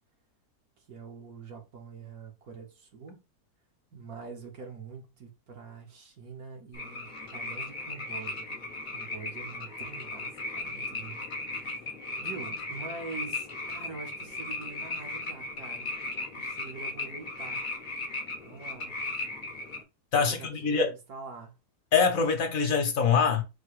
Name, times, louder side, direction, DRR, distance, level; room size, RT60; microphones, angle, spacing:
voice 1, 0.8-3.2 3.9-8.5 8.9-11.3 11.6-11.9 12.2-15.9 16.3-17.7 18.4-19.0 20.2-21.5, right 4 dB, 65° right, 1.6 m, -45 dB
sound 1, 6.7-19.8, left 2 dB, 40° left, 0.8 m, -37 dB
voice 2, 20.1-20.9 21.9-23.4, left 5 dB, 60° left, 1.2 m, -24 dB
4.6 x 2.2 x 4.7 m
omnidirectional pair, 1.7 m